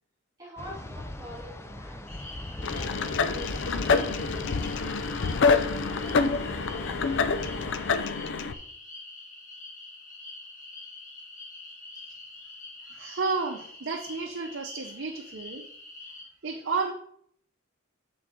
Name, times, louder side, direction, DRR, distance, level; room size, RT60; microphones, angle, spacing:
voice 1, 0.4-2.2 2.5-4.8, equal, 20° right, -8 dB, 3.4 m, -45 dB
sound 1, 0.6-7.9, left 1 dB, 15° left, 0.5 m, -39 dB
sound 2, 2.1-16.2, left 2 dB, 40° left, 1.9 m, -45 dB
sound 3, 2.6-8.5, left 4 dB, 60° left, 0.5 m, -27 dB
voice 2, 12.9-15.7 16.4-16.9, right 4 dB, 60° right, 2 dB, 0.7 m, -31 dB
7.8 x 7.1 x 3.7 m, 0.65 s
head